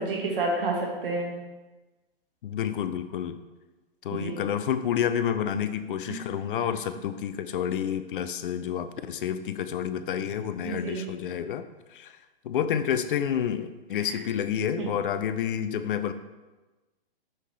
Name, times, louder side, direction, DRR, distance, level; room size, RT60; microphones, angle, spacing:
voice 1, 0.0-1.3 4.1-4.4 6.1-6.2 10.6-11.0 14.0-14.1 14.8-14.9, right 3 dB, 65° right, -1 dB, 1.5 m, -30 dB
voice 2, 2.4-3.4 4.0-11.6 11.9-12.2 12.4-16.1, left 9 dB, 60° left, 11 dB, 0.5 m, -29 dB
6.3 x 5.5 x 3.2 m, 1.2 s
hypercardioid pair, 140°, 30 cm